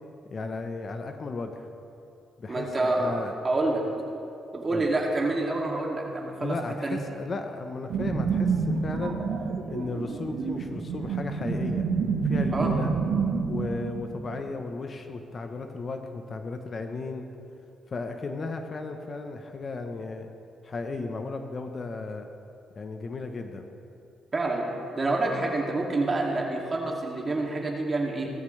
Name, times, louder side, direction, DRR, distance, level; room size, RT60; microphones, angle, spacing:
voice 1, 0.3-1.7 2.4-3.3 4.7-4.8 6.4-9.2 9.7-11.9 12.2-12.9 13.5-17.3 17.9-20.3 20.6-22.3 22.8-23.7, left 3 dB, 40° left, 6 dB, 1.0 m, -35 dB
voice 2, 2.5-3.8 4.5-6.6 6.8-7.0 12.5-12.7 24.3-24.7 25.0-28.3, right 2 dB, 30° right, -1 dB, 2.5 m, -27 dB
sound 1, 7.9-14.6, right 5 dB, 75° right, 1.3 m, -28 dB
17.0 x 14.0 x 3.3 m, 2.7 s
cardioid pair, 90°, 0 cm